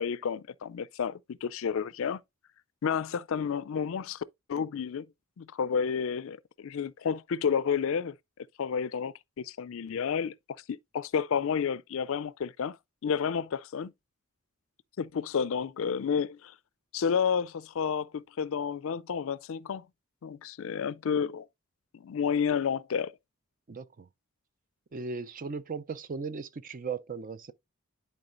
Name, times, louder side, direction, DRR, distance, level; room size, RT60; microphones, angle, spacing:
voice 1, 0.0-2.2 2.8-5.1 5.4-8.1 8.6-10.3 10.7-12.8 13.0-13.9 15.0-16.5 16.9-19.8 20.2-21.5 21.9-23.1, left 6 dB, 65° left, 0.4 m, -30 dB
voice 2, 23.7-24.1 24.9-27.5, right 5 dB, 40° right, 0.5 m, -37 dB
11.0 x 4.5 x 2.5 m
head